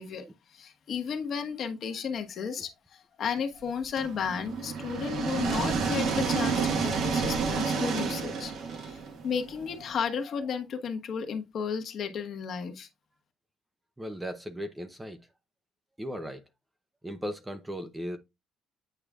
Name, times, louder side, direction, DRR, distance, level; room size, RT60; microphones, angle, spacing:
voice 1, 0.0-12.9, left 6 dB, 45° left, 1.3 m, -33 dB
sound 1, 4.0-9.9, right 5 dB, 60° right, 1.5 m, -30 dB
voice 2, 14.0-15.2 16.0-16.4 17.0-18.2, equal, 10° right, 0.7 m, -37 dB
8.8 x 4.8 x 2.4 m
cardioid pair, 155°, 0 cm